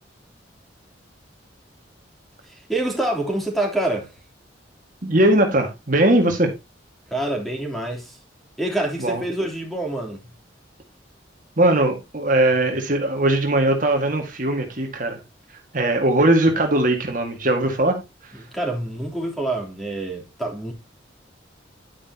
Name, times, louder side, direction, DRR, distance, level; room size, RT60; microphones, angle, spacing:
voice 1, 2.5-4.1 7.1-8.2 8.6-10.2 18.5-20.7, right 1 dB, ahead, 3.4 m, -26 dB
voice 2, 5.0-6.5 9.0-9.2 11.6-15.2 15.7-18.0 18.2-18.4, right 1 dB, 45° right, 1.9 m, -20 dB
10.0 x 10.0 x 2.9 m
head